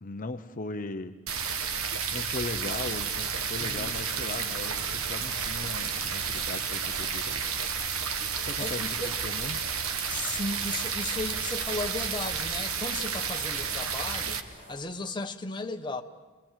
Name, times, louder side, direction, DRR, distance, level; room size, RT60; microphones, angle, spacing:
voice 1, 0.0-1.1 2.1-7.4 8.4-8.9 9.2-9.6, left 3 dB, 40° left, 8 dB, 0.8 m, -38 dB
sound 1, 1.3-14.4, right 6 dB, 70° right, 1.4 m, -31 dB
sound 2, 2.8-14.8, equal, 35° right, 5.9 m, -51 dB
voice 2, 3.6-3.9 8.6-9.2 10.1-16.0, left 2 dB, 20° left, 5 dB, 1.2 m, -35 dB
29.5 x 22.0 x 7.5 m, 1.3 s
head